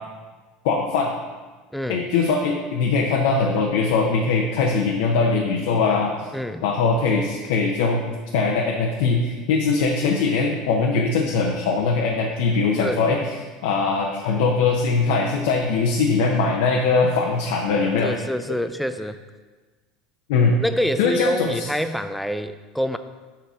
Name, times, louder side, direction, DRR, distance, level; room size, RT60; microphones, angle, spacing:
voice 1, 0.6-1.1 1.9-6.1 6.6-8.0 8.3-13.3 13.6-18.1 18.5-18.6 20.3-20.6 21.0-21.7, left 4 dB, 80° left, 0 dB, 0.8 m, -21 dB
voice 2, 1.7-2.1 6.3-6.7 12.8-13.0 18.0-19.2 20.6-23.0, equal, ahead, 10 dB, 0.4 m, -26 dB
5.9 x 5.8 x 4.9 m, 1.3 s
supercardioid pair, 125°, 0 cm